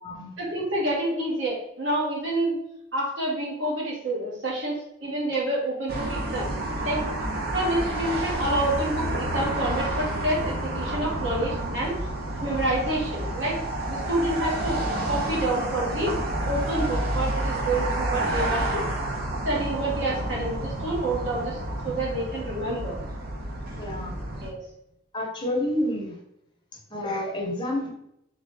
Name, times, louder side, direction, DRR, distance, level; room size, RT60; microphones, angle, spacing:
voice 1, 0.4-2.6 2.9-6.5 6.8-7.0 7.5-12.0 12.4-13.6 13.9-16.1 16.4-18.8 19.4-21.6 21.8-23.0 24.4-24.6, right 1 dB, 75° right, -4 dB, 1.6 m, -28 dB
sound 1, 5.9-24.5, right 1 dB, 50° right, 0.8 m, -29 dB
voice 2, 23.8-24.1 25.1-26.2 26.9-27.9, left 1 dB, 25° left, -1 dB, 0.9 m, -29 dB
3.7 x 3.2 x 3.3 m, 0.77 s
head